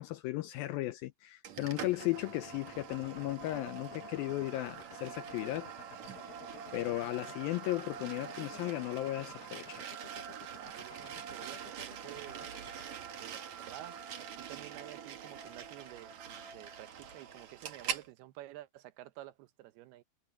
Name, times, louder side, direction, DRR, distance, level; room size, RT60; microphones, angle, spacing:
voice 1, 0.0-5.7 6.7-9.9, left 17 dB, 85° left, 2.1 m, -36 dB
sound 1, 1.4-18.1, right 8 dB, 55° right, 2.4 m, -44 dB
sound 2, 2.6-12.9, left 12 dB, 65° left, 2.6 m, -52 dB
voice 2, 10.5-12.5 13.2-20.0, right 15 dB, 80° right, 2.7 m, -51 dB
omnidirectional pair, 4.7 m